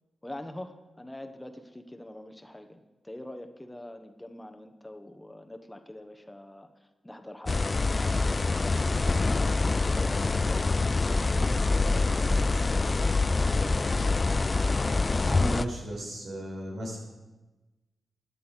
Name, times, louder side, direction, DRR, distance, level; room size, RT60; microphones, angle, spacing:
voice 1, 0.2-10.9 11.4-13.4, left 1 dB, 15° left, 7 dB, 1.2 m, -45 dB
sound 1, 7.5-15.6, left 3 dB, 40° left, 0.4 m, -25 dB
voice 2, 15.2-17.0, right 1 dB, 75° right, -2 dB, 5.1 m, -35 dB
14.0 x 10.5 x 5.0 m, 1.1 s
cardioid pair, 45°, 0 cm